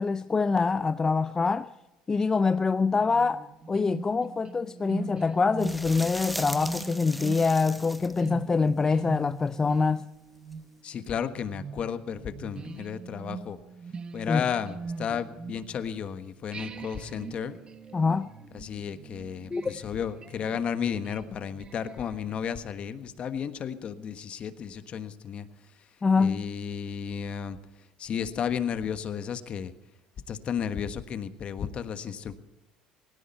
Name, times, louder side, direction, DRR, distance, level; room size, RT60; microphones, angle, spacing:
voice 1, 0.0-1.7 2.1-10.1 14.3-14.4 17.9-18.3 19.5-19.7 26.0-26.4, left 4 dB, 20° left, 0.5 m, -25 dB
sound 1, 3.0-16.1 16.5-22.4, right 5 dB, 35° right, 1.1 m, -42 dB
sound 2, 5.6-8.3 10.5-10.6, equal, ahead, 1.0 m, -38 dB
voice 2, 10.8-13.6 14.1-17.6 18.5-25.5 25.8-25.9 26.2-27.6 28.0-29.7 30.3-32.3, left 7 dB, 45° left, 1.4 m, -33 dB
18.5 x 16.5 x 4.5 m
supercardioid pair, 100°, 3 cm